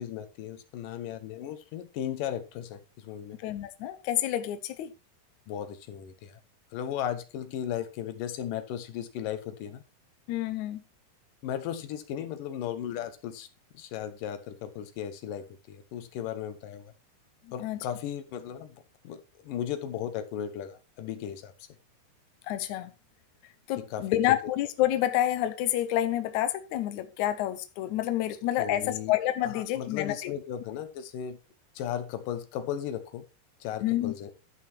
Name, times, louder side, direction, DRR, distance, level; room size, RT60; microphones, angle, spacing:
voice 1, 0.0-3.4 5.5-6.4 6.7-9.8 11.4-13.5 13.7-16.9 17.5-18.8 19.0-21.7 23.8-24.4 28.6-29.1 29.4-31.4 31.8-33.2 33.6-34.3, left 10 dB, 70° left, 2.4 m, -36 dB
voice 2, 3.4-4.9 10.3-10.8 17.4-17.8 22.5-22.9 23.7-30.3 33.8-34.1, left 13 dB, 85° left, 1.7 m, -28 dB
11.5 x 5.7 x 4.3 m
omnidirectional pair, 4.5 m